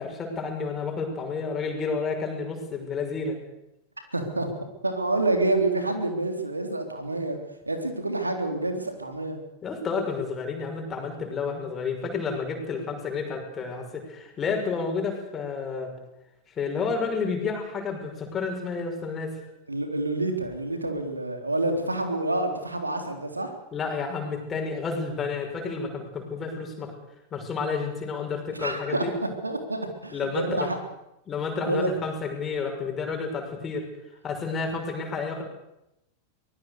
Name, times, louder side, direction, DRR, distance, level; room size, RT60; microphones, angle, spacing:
voice 1, 0.0-3.4 9.6-15.9 16.5-19.4 23.7-26.9 27.3-29.1 30.1-30.7 31.3-33.9 34.2-35.4, left 5 dB, 25° left, 3 dB, 6.2 m, -30 dB
voice 2, 4.1-4.5 4.8-7.4 7.7-9.4 19.7-23.5 28.6-30.8 31.6-31.9, right 2 dB, 80° right, 5 dB, 3.7 m, -28 dB
24.0 x 19.5 x 6.8 m, 0.87 s
figure-of-eight pair, 90°, 0 cm